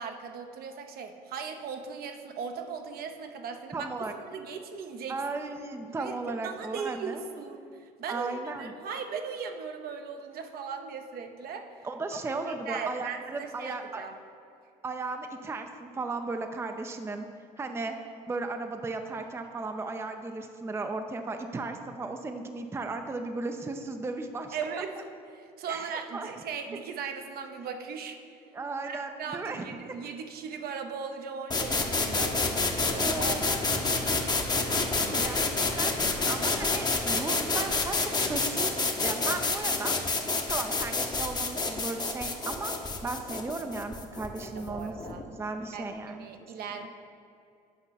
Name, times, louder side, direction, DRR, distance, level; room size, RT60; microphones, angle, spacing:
voice 1, 0.0-3.9 4.3-5.2 5.9-6.1 6.4-7.7 8.0-11.7 12.4-14.2 24.5-24.9 25.3-28.2 28.8-34.0 34.7-35.3 44.4-45.2 45.7-46.9, right 6 dB, 50° right, 6 dB, 0.7 m, -38 dB
voice 2, 3.7-4.1 5.1-7.2 8.1-8.7 11.8-14.1 14.8-17.3 17.6-18.0 18.3-24.6 25.7-26.3 26.7-26.8 28.5-29.8 31.8-32.0 32.9-33.4 35.1-35.9 36.3-42.7 43.0-44.9 45.3-46.3, right 3 dB, 15° right, 6 dB, 0.5 m, -36 dB
sound 1, 31.5-45.2, left 3 dB, 20° left, 0.9 m, -28 dB
8.2 x 5.5 x 4.0 m, 2.4 s
hypercardioid pair, 70°, 20 cm